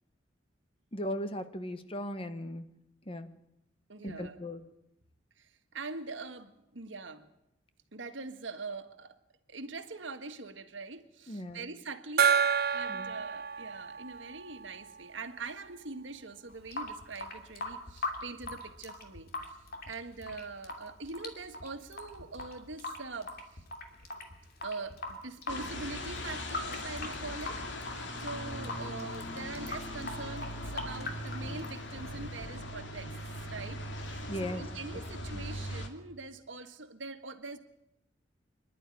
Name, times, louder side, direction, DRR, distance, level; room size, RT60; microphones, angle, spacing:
voice 1, 0.9-2.6 3.1-3.3 4.0-4.6 11.3-11.6 12.9-13.1 34.3-34.6, equal, 30° left, 10 dB, 1.2 m, -37 dB
voice 2, 3.9-4.4 5.4-7.3 7.9-9.2 9.5-12.3 12.7-19.6 19.8-23.6 24.6-27.6 28.2-33.2 33.5-37.6, right 3 dB, 85° right, 8 dB, 1.7 m, -43 dB
Gong, 12.2-15.4, right 7 dB, 55° right, 0.8 m, -30 dB
Water tap faucet / Sink (filling or washing) / Drip, 16.5-32.4, left 2 dB, 55° left, 2.7 m, -42 dB
sound 1, 25.5-35.9, left 1 dB, 70° left, 2.5 m, -40 dB
25.0 x 11.5 x 9.9 m, 0.86 s
head